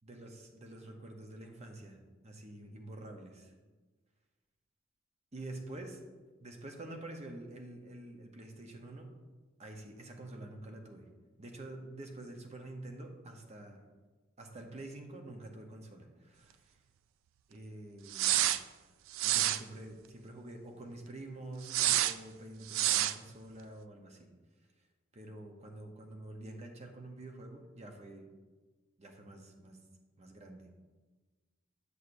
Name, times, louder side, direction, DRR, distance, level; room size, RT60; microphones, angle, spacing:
voice 1, 0.0-2.0 2.2-3.5 5.3-6.0 6.4-9.1 9.6-11.0 11.4-13.8 14.4-16.6 17.5-18.4 19.2-24.3 25.1-28.3 29.0-29.8 30.2-30.7, right 1 dB, 35° right, 3 dB, 0.8 m, -47 dB
sound 1, 18.1-18.6 19.1-19.6 21.7-22.1 22.7-23.2, right 13 dB, 90° right, 0.3 m, -28 dB
8.3 x 6.3 x 2.6 m, 1.3 s
head